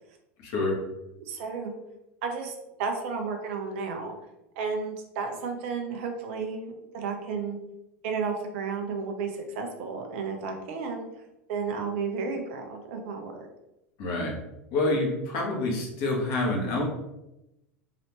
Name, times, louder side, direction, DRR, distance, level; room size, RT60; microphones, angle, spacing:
voice 1, 0.4-0.7 14.0-14.3 14.7-16.8, left 2 dB, 50° left, -1 dB, 1.2 m, -27 dB
voice 2, 1.2-1.7 2.2-2.5 2.8-4.1 4.6-7.6 8.0-11.0 11.5-13.5, right 5 dB, 60° right, 4 dB, 0.7 m, -32 dB
4.0 x 2.8 x 3.0 m, 0.91 s
figure-of-eight pair, 85°, 8 cm